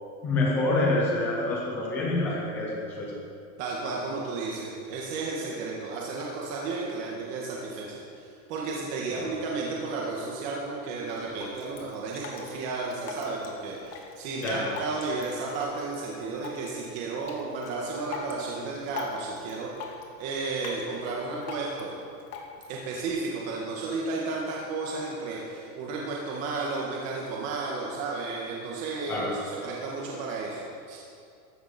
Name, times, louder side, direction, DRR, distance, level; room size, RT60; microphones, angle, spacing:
voice 1, 0.2-3.2 9.2-9.3 14.4-14.7 29.1-29.3, left 2 dB, 5° left, -3 dB, 0.3 m, -27 dB
voice 2, 3.6-19.7 20.2-21.9 22.7-31.0, right 3 dB, 35° right, -3 dB, 1.8 m, -33 dB
Drip, 11.1-23.1, left 5 dB, 85° left, 2.4 m, -44 dB
14.5 x 13.0 x 4.4 m, 2.4 s
supercardioid pair, 170°, 45 cm